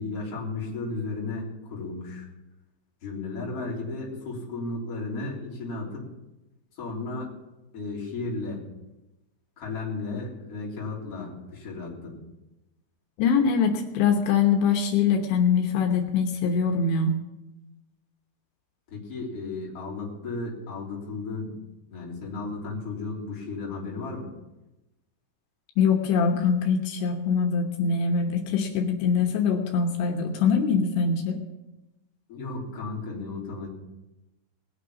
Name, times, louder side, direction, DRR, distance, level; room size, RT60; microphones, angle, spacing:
voice 1, 0.0-2.3 3.0-6.1 6.8-7.3 7.7-8.6 9.6-12.2 18.9-21.5 21.9-24.3 32.3-33.7, left 3 dB, 35° left, -4 dB, 3.9 m, -34 dB
voice 2, 13.2-17.2 25.8-31.4, left 6 dB, 80° left, 3 dB, 3.4 m, -23 dB
20.0 x 6.7 x 7.0 m, 1.0 s
omnidirectional pair, 5.2 m